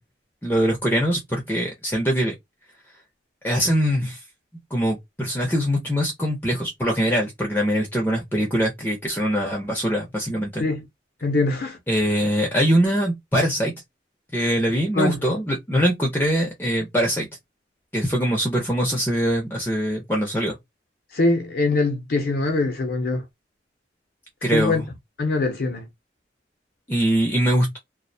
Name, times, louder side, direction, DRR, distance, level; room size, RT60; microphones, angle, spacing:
voice 1, 0.4-2.3 3.4-4.2 4.7-10.7 11.9-13.7 14.3-17.3 17.9-20.6 24.4-24.9 26.9-27.8, equal, 10° left, 0.5 m, -22 dB
voice 2, 11.2-11.8 14.9-15.2 21.1-23.2 24.5-24.8 25.2-25.9, left 3 dB, 55° left, 0.5 m, -23 dB
2.4 x 2.0 x 2.6 m
head